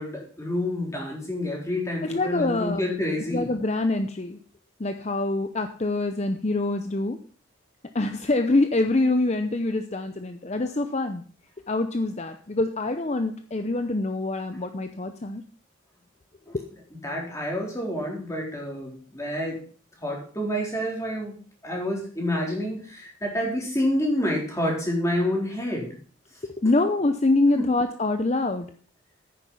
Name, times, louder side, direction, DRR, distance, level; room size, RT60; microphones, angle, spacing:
voice 1, 0.0-3.5 16.5-16.6 17.0-19.6 20.0-21.3 21.6-25.9 26.6-26.7 27.6-27.7, left 1 dB, 15° left, -1 dB, 3.9 m, -28 dB
voice 2, 2.0-2.8 3.3-4.4 4.8-7.2 7.9-11.2 11.7-15.4 26.6-28.7, left 2 dB, 30° left, 8 dB, 0.7 m, -25 dB
10.0 x 9.7 x 5.7 m, 0.44 s
head